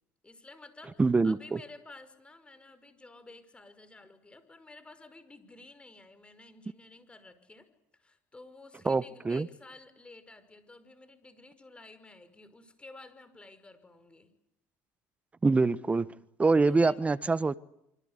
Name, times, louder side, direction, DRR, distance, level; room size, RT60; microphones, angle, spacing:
voice 1, 0.2-7.7 7.9-14.3 16.6-17.0, left 2 dB, 15° left, 11 dB, 5.5 m, -52 dB
voice 2, 1.0-1.6 8.8-9.5 15.4-16.1 16.4-17.5, right 3 dB, 20° right, 16 dB, 1.3 m, -25 dB
26.0 x 25.5 x 8.3 m, 0.80 s
supercardioid pair, 100°, 7 cm